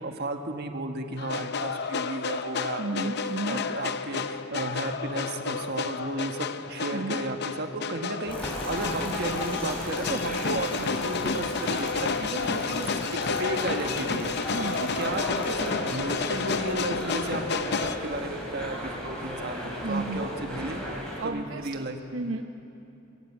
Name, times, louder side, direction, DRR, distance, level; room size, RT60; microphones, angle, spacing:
voice 1, 0.0-3.1 3.5-12.9 13.1-14.4 14.8-22.0, right 2 dB, 55° right, 5 dB, 1.4 m, -34 dB
sound 1, 1.2-18.0, left 5 dB, 55° left, 0.7 m, -31 dB
voice 2, 2.8-3.7 6.9-7.2 14.5-14.9 19.8-20.3 21.2-21.9 22.1-22.4, right 2 dB, 80° right, 5 dB, 0.9 m, -32 dB
sound 2, 8.2-21.2, equal, 5° left, 4.5 m, -36 dB
Bicycle, 8.3-16.0 16.7-16.8 17.0-17.3, left 2 dB, 25° left, 5.6 m, -49 dB
23.0 x 17.5 x 7.4 m, 2.8 s
head